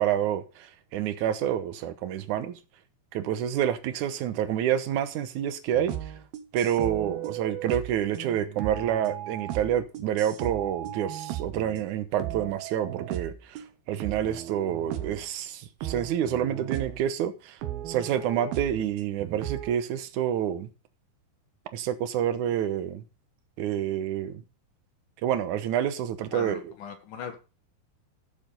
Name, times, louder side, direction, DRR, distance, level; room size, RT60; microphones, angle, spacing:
voice 1, 0.0-2.6 3.1-5.9 6.5-17.6 17.9-20.7 21.7-23.0 23.6-24.4 25.2-26.7, right 10 dB, 65° right, 2.2 m, -28 dB
sound 1, 5.7-11.9 12.2-13.7 14.0-15.3 15.8-17.1 17.6-19.8, right 13 dB, 90° right, 3.0 m, -36 dB
voice 2, 26.3-27.4, left 6 dB, 65° left, 3.0 m, -38 dB
12.5 x 7.1 x 5.2 m
omnidirectional pair, 4.1 m